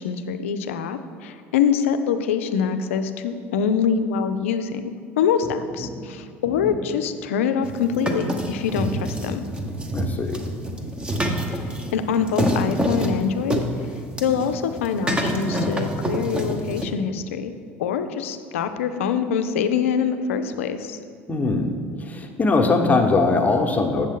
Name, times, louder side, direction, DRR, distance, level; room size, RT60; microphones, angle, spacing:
voice 1, 0.0-9.5 11.5-11.6 11.9-13.6 14.2-17.5 17.8-21.0, left 7 dB, 75° left, 9 dB, 0.5 m, -24 dB
sound 1, 7.6-16.9, right 1 dB, 15° right, 1.0 m, -27 dB
voice 2, 9.9-10.4 21.3-21.7 22.0-24.1, left 3 dB, 20° left, 3 dB, 1.0 m, -21 dB
7.6 x 7.2 x 3.7 m, 2.2 s
hypercardioid pair, 70°, 7 cm